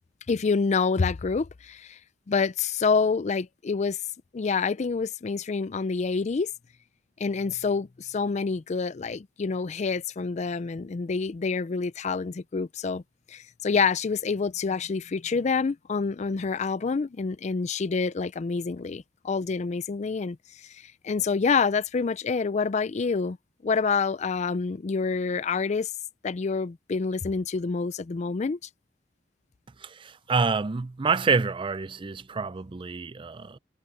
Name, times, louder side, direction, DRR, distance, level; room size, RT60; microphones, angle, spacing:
voice 1, 0.3-2.0 2.3-4.0 4.3-6.5 7.2-13.0 13.3-23.4 23.6-25.9 26.2-28.7, left 5 dB, 40° left, 0.4 m, -27 dB
voice 2, 29.8-33.6, right 4 dB, 30° right, 0.4 m, -27 dB
head